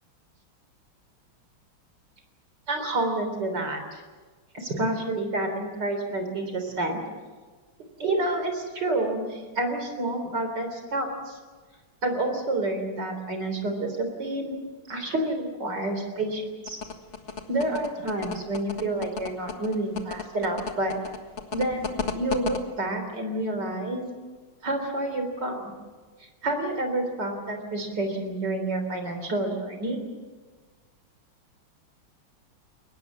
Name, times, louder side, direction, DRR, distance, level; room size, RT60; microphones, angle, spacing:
voice 1, 2.7-4.0 4.5-7.0 8.0-11.4 12.0-14.6 14.9-16.8 17.5-20.9 21.5-24.1 24.6-25.7 26.4-30.0, right 2 dB, 55° right, 6 dB, 4.2 m, -29 dB
sound 1, 16.7-22.6, left 6 dB, 35° left, 1.6 m, -33 dB
23.0 x 19.5 x 7.4 m, 1.4 s
omnidirectional pair, 2.3 m